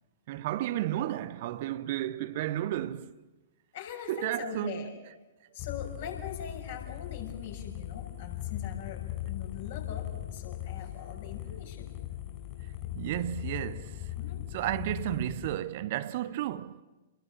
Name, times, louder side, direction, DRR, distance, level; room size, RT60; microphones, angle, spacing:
voice 1, 0.3-3.2 4.1-4.9 12.9-14.1 14.5-16.8, right 13 dB, 45° right, 0.9 m, -32 dB
voice 2, 3.7-5.0 5.5-11.9 14.2-14.4, left 8 dB, 55° left, 6.4 m, -42 dB
sound 1, 5.6-15.5, left 13 dB, 35° left, 6.0 m, -39 dB
30.0 x 21.5 x 7.5 m
figure-of-eight pair, 110°, 0 cm